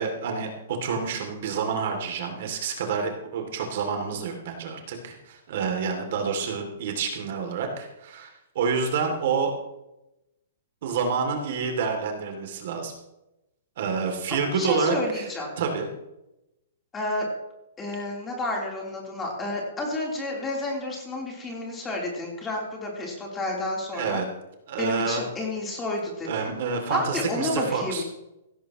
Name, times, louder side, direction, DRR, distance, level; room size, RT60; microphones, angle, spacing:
voice 1, 0.0-9.6 10.8-12.9 13.8-15.3 15.6-15.9 23.9-24.3 24.7-25.2 26.3-28.0, right 5 dB, 55° right, 3 dB, 2.7 m, -28 dB
voice 2, 14.3-15.5 16.9-17.3 17.8-24.2 24.8-26.5 26.9-28.0, left 2 dB, 15° left, -2 dB, 3.6 m, -30 dB
16.5 x 15.0 x 3.1 m, 0.91 s
hypercardioid pair, 160°, 0 cm